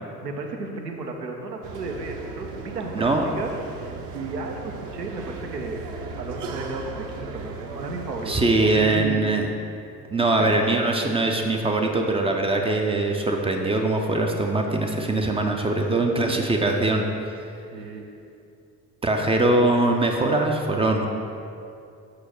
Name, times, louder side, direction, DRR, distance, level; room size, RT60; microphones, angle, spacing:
voice 1, 0.2-9.2 10.4-10.5 16.2-16.4 17.7-18.0, right 3 dB, 80° right, 2 dB, 0.9 m, -34 dB
sound 1, 1.6-8.7, right 4 dB, 40° right, 0.8 m, -37 dB
voice 2, 2.9-3.3 8.3-9.5 10.1-17.1 19.0-21.1, right 2 dB, 10° right, 2 dB, 0.5 m, -22 dB
6.3 x 4.8 x 6.0 m, 2.5 s
figure-of-eight pair, 60°, 48 cm